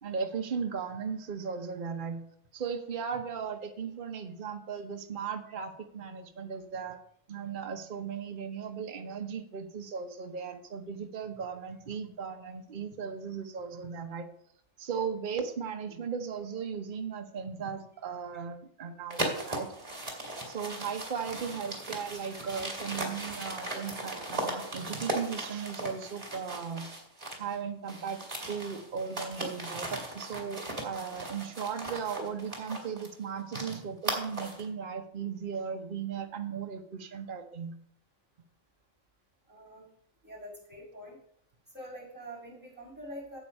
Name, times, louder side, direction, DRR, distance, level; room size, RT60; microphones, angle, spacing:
voice 1, 0.0-2.2 2.5-7.0 7.3-14.3 14.8-19.7 20.5-26.9 27.4-28.2 28.5-37.7, right 6 dB, 45° right, 5 dB, 1.0 m, -37 dB
sound 1, 19.1-27.5 27.8-34.7, right 1 dB, 25° right, 2.3 m, -38 dB
voice 2, 39.5-39.8 40.2-41.2 41.7-43.4, equal, 5° right, -6 dB, 5.0 m, -45 dB
9.1 x 8.0 x 5.3 m, 0.67 s
omnidirectional pair, 1.4 m